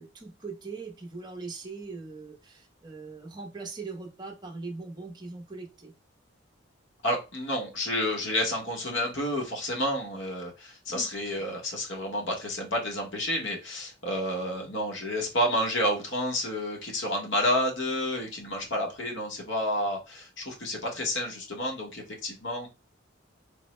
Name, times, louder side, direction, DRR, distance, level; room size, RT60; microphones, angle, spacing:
voice 1, 0.0-5.9 10.9-11.1, right 4 dB, 20° right, 0.7 m, -41 dB
voice 2, 7.0-22.7, left 1 dB, 65° left, 1.0 m, -30 dB
3.5 x 2.0 x 3.1 m
head